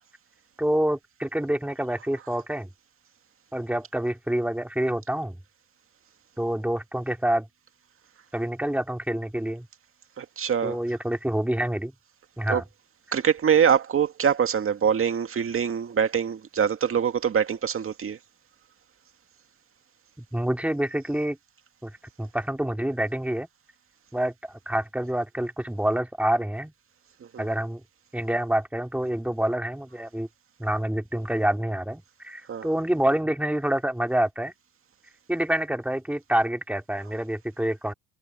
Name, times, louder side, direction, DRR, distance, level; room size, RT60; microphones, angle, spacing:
voice 1, 0.6-2.7 3.5-5.4 6.4-7.5 8.3-9.7 10.6-11.9 12.4-12.6 20.2-21.4 21.8-21.9 22.2-23.5 24.1-26.7 27.4-27.8 28.1-30.3 30.6-34.5 35.3-37.9, right 1 dB, 5° right, 3.0 m, -27 dB
voice 2, 10.2-10.8 12.5-12.6 13.1-18.2 27.3-27.5 32.5-32.7, right 7 dB, 40° right, 2.1 m, -24 dB
supercardioid pair, 75°, 34 cm